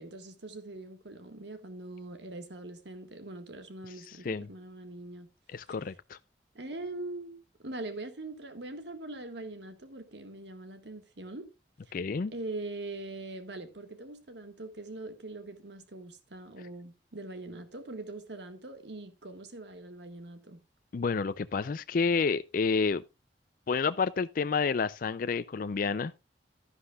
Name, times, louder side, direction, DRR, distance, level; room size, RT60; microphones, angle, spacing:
voice 1, 0.0-5.3 5.7-5.8 6.5-11.5 11.9-12.0 12.3-20.6, right 2 dB, 65° right, 1.6 m, -42 dB
voice 2, 5.5-6.2 11.9-12.3 20.9-23.0 23.7-26.1, left 5 dB, 50° left, 0.4 m, -29 dB
11.5 x 11.0 x 2.3 m
head